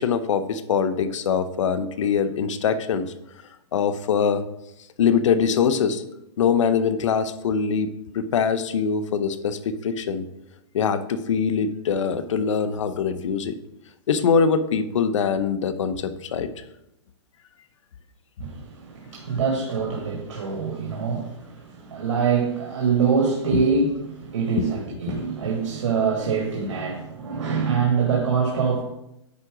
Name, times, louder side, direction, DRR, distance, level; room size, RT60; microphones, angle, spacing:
voice 1, 0.0-3.1 3.7-4.4 5.0-6.0 6.4-10.3 10.7-13.6 14.1-16.5 24.6-24.7 25.1-25.2, left 6 dB, 80° left, 11 dB, 0.8 m, -23 dB
voice 2, 18.4-28.8, right 5 dB, 90° right, -1 dB, 1.7 m, -24 dB
9.6 x 3.8 x 4.9 m, 0.84 s
hypercardioid pair, 150°, 16 cm